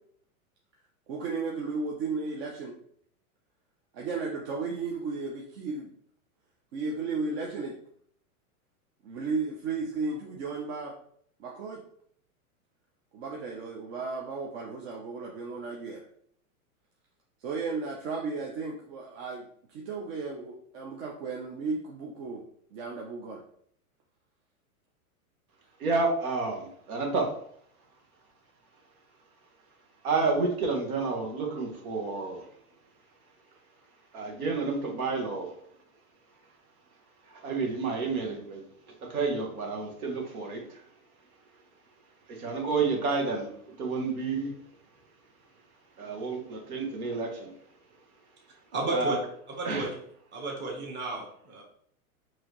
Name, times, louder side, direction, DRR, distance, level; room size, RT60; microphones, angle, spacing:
voice 1, 1.1-2.8 3.9-5.9 6.7-7.8 9.0-10.9 11.4-11.8 13.1-16.0 17.4-22.4 22.7-23.4, right 4 dB, 45° right, -1 dB, 0.8 m, -34 dB
voice 2, 25.8-27.3 30.0-32.4 34.1-35.5 37.4-38.6 39.1-40.8 42.4-43.5 43.8-44.5 46.0-47.5 48.9-49.2 49.6-49.9, right 4 dB, 75° right, 0 dB, 1.4 m, -30 dB
voice 3, 48.7-49.2 49.6-49.9 50.3-51.6, right 2 dB, 25° right, -1 dB, 1.2 m, -32 dB
4.8 x 2.9 x 3.0 m, 0.65 s
hypercardioid pair, 130°, 43 cm